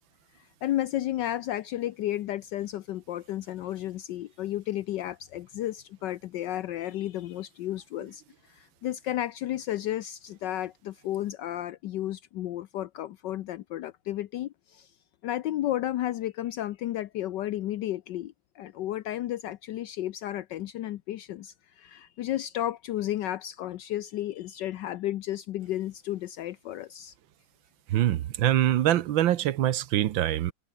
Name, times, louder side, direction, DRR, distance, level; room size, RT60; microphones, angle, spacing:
voice 1, 0.6-8.2 8.5-14.9 15.2-27.1, left 13 dB, 70° left, 1.3 m, -33 dB
voice 2, 27.9-30.5, right 12 dB, 90° right, 1.7 m, -24 dB
omnidirectional pair, 2.1 m